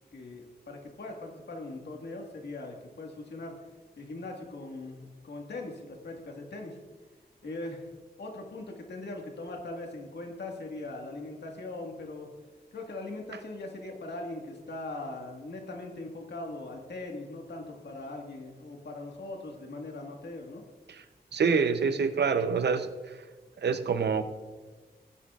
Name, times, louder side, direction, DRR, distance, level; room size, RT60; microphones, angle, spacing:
voice 1, 0.1-3.5 4.0-6.8 7.4-7.9 8.2-12.3 12.7-20.6, left 2 dB, 90° left, 1 dB, 1.7 m, -40 dB
voice 2, 21.3-22.9 23.6-24.2, right 5 dB, 80° right, 10 dB, 0.7 m, -26 dB
17.0 x 9.9 x 2.4 m, 1.4 s
wide cardioid pair, 130°, 17 cm